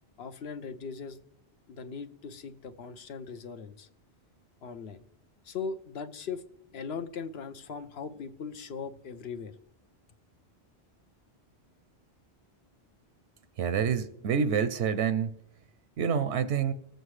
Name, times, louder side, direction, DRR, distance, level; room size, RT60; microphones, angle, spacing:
voice 1, 0.2-1.2 1.7-3.9 4.6-5.0 5.4-6.4 6.7-9.5, left 5 dB, 70° left, 0.9 m, -39 dB
voice 2, 13.6-15.4 16.0-16.7, right 7 dB, 85° right, 0.9 m, -27 dB
19.5 x 7.8 x 3.2 m
omnidirectional pair, 1.1 m